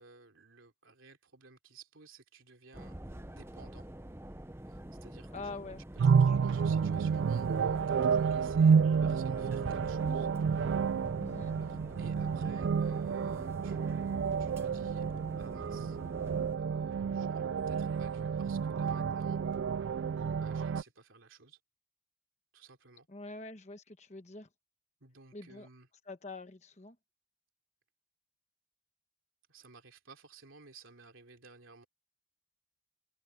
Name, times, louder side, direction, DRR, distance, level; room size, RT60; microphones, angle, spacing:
voice 1, 0.0-3.9 4.7-5.7 6.0-10.3 11.6-15.1 15.4-16.0 16.6-19.4 20.3-21.6 22.5-23.1 25.0-25.9 29.5-31.9, right 4 dB, 90° right, 3.1 m, -56 dB
sound 1, 2.7-16.6, right 1 dB, 10° right, 0.7 m, -47 dB
voice 2, 5.3-5.8 6.3-6.9 11.2-11.5 23.1-24.5 25.3-25.7 26.1-27.0, left 3 dB, 35° left, 1.1 m, -45 dB
sound 2, 6.0-20.8, right 6 dB, 65° right, 0.3 m, -30 dB
head